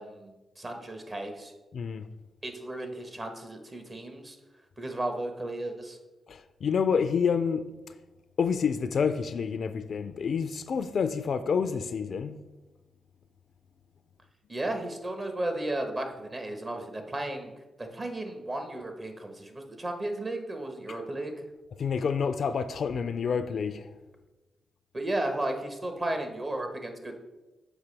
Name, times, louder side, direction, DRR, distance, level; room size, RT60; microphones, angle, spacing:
voice 1, 0.0-1.5 2.4-4.4 4.8-6.0 14.5-17.5 17.8-21.4 24.9-27.2, right 1 dB, 40° right, 1.2 m, -34 dB
voice 2, 1.7-2.1 6.3-7.6 8.4-12.4 21.8-23.9, left 6 dB, 65° left, 0.3 m, -28 dB
7.1 x 4.9 x 3.3 m
supercardioid pair, 40°, 0 cm